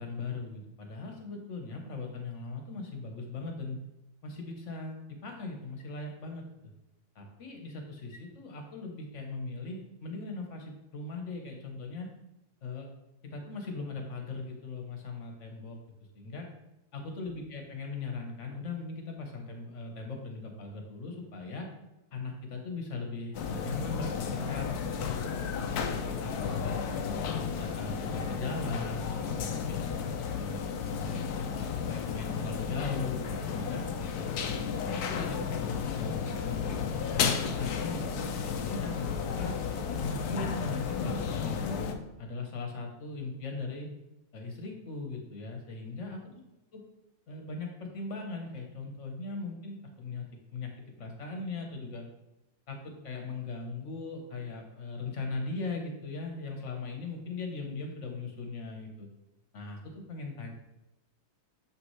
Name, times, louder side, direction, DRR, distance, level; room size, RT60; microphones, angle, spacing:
voice 1, 0.0-3.8 4.2-6.4 7.1-12.1 12.6-12.9 13.2-15.8 16.1-16.5 16.9-21.7 22.1-25.2 25.7-29.8 30.3-31.3 31.6-33.9 34.5-34.8 35.1-39.5 40.0-43.9 44.3-46.2 46.7-46.8 47.3-50.7 51.0-52.1 52.7-59.1 59.5-60.5, left 3 dB, 45° left, 2 dB, 1.1 m, -39 dB
sound 1, 23.3-41.9, left 6 dB, 80° left, 0.8 m, -33 dB
7.2 x 5.9 x 3.2 m, 0.93 s
omnidirectional pair, 2.4 m